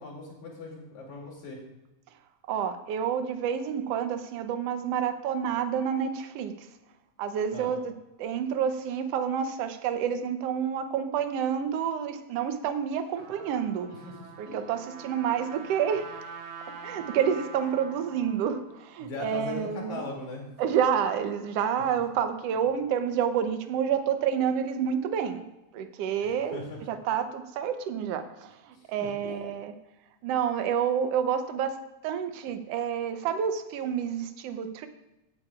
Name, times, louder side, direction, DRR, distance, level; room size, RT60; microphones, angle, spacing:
voice 1, 0.0-1.6 7.5-7.7 13.9-14.1 14.5-14.6 19.0-20.4 21.7-21.8 26.2-26.8 28.7-29.3, left 3 dB, 75° left, -1 dB, 3.9 m, -39 dB
voice 2, 2.5-6.7 7.2-13.9 14.4-16.1 16.7-20.0 20.6-25.4 25.7-29.7 30.2-31.8 32.0-34.9, right 8 dB, 70° right, 8 dB, 1.6 m, -29 dB
Trumpet, 12.9-18.9, right 5 dB, 55° right, 2.1 m, -44 dB
16.5 x 9.9 x 2.4 m, 0.99 s
omnidirectional pair, 3.4 m